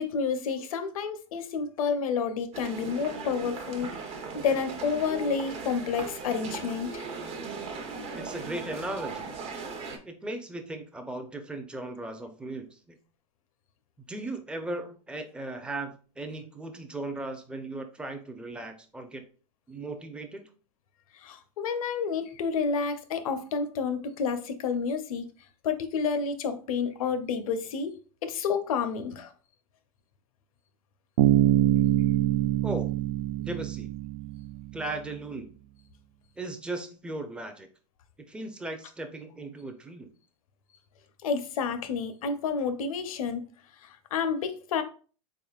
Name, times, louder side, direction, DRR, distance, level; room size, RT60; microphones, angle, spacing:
voice 1, 0.0-7.1 21.1-25.3 25.6-27.9 28.2-29.3 41.2-43.4 43.8-44.8, left 5 dB, 75° left, 0.6 m, -30 dB
sound 1, 2.5-10.0, right 4 dB, 35° right, 0.8 m, -38 dB
voice 2, 8.1-9.3 10.0-13.0 14.1-19.2 19.7-20.5 32.6-32.9 33.4-33.9 34.7-35.5 36.4-37.7 38.3-40.1, right 2 dB, 5° right, 0.5 m, -37 dB
Bass guitar, 31.2-34.8, right 14 dB, 70° right, 0.4 m, -24 dB
3.9 x 3.7 x 2.3 m
hypercardioid pair, 110°, 18 cm